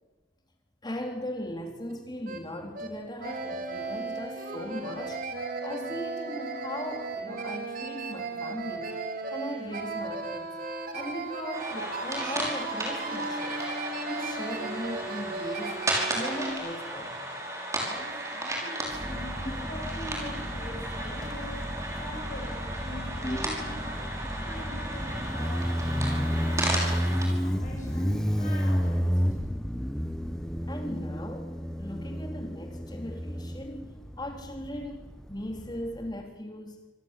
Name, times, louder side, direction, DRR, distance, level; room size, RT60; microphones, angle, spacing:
voice 1, 0.8-5.2 5.6-8.9 9.3-10.5 10.9-13.6 14.1-15.8 16.1-17.1 19.4-19.7 23.2-23.4 28.4-28.5 30.7-35.0 35.3-36.8, left 1 dB, 20° left, 4 dB, 3.7 m, -38 dB
sound 1, 1.9-2.0 2.3-2.4 2.8-2.9 3.2-16.5, right 3 dB, 45° right, 3.7 m, -35 dB
sound 2, 11.5-27.3, right 1 dB, 15° right, 5.6 m, -34 dB
voice 2, 17.9-21.7 22.0-24.1 24.4-27.1 27.4-29.3, left 1 dB, 40° left, -1 dB, 7.0 m, -43 dB
Motorcycle, 18.9-36.1, equal, 5° left, 1.2 m, -31 dB
26.5 x 17.0 x 9.9 m, 1.2 s
head